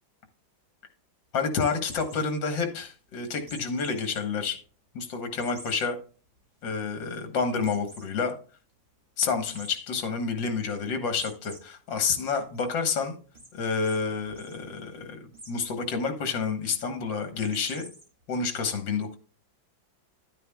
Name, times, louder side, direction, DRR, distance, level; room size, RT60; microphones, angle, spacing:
voice 1, 1.3-4.6 4.9-6.0 6.6-8.3 9.2-13.2 13.5-17.9 18.3-19.2, left 5 dB, 70° left, 7 dB, 2.0 m, -29 dB
sound 1, 1.6-2.2 3.5-4.2 4.6-4.7 5.4-5.9 6.4-6.5 6.7-6.8 7.6-8.1 9.5-9.7 11.1-11.6 12.0-12.6 13.3-13.5 13.8-14.0 14.3-14.6 15.3-15.7 17.3-18.0, right 1 dB, 25° right, 2.3 m, -46 dB
11.5 x 9.3 x 2.3 m, 0.37 s
omnidirectional pair, 2.1 m